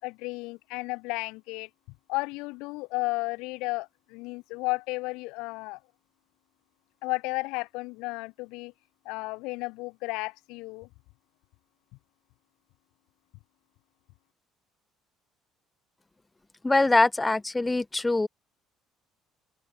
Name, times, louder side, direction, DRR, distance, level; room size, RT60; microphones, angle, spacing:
voice 1, 0.0-1.7 2.1-5.8 7.0-8.7 9.0-10.9, left 25 dB, 90° left, 5.7 m, -33 dB
voice 2, 16.6-18.3, left 2 dB, 15° left, 1.3 m, -23 dB
open air
cardioid pair, 115°, 0 cm